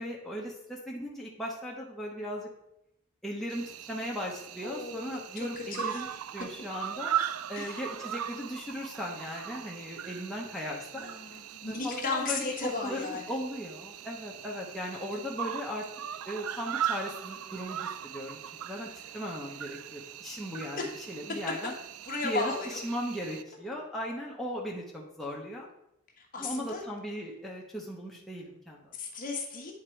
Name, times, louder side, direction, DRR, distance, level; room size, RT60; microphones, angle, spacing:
voice 1, 0.0-2.5 3.2-6.1 6.3-7.1 7.5-11.1 11.7-15.8 16.2-21.7 22.2-25.7 26.4-28.9, equal, ahead, -4 dB, 0.9 m, -37 dB
Cricket, 3.5-23.4, right 10 dB, 80° right, 0.4 m, -39 dB
voice 2, 4.6-6.0 7.6-7.8 10.9-13.2 20.8-20.9 22.1-22.8 26.2-26.8 28.9-29.7, left 4 dB, 40° left, 0 dB, 1.2 m, -35 dB
9.5 x 3.6 x 4.5 m, 0.81 s
head